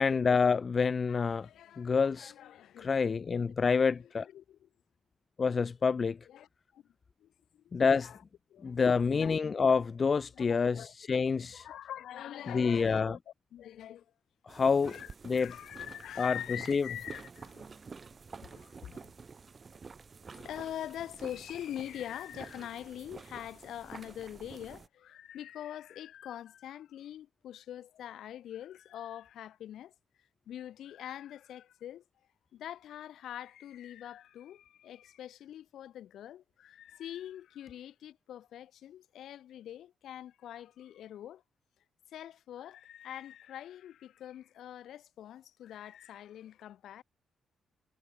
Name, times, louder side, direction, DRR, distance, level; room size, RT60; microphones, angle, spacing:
voice 1, 0.0-1.5 1.8-2.3 2.8-4.3 5.4-6.2 7.7-8.1 8.6-11.7 12.5-13.2 14.4-15.0 15.2-15.5 16.2-16.4 16.7-16.9, left 5 dB, 30° left, 0.4 m, -27 dB
voice 2, 1.1-2.9 3.3-3.4 4.2-4.7 6.3-6.5 6.7-6.8 7.2-8.2 8.5-8.8 9.0-9.3 10.3-10.9 11.5-13.2 13.5-14.1 14.6-17.8 18.4-19.1 20.4-29.9 30.5-32.0 32.5-41.4 42.1-47.0, left 11 dB, 70° left, 2.3 m, -44 dB
sound 1, 14.5-24.9, right 5 dB, 25° right, 3.4 m, -50 dB
wide cardioid pair, 175°, 0 cm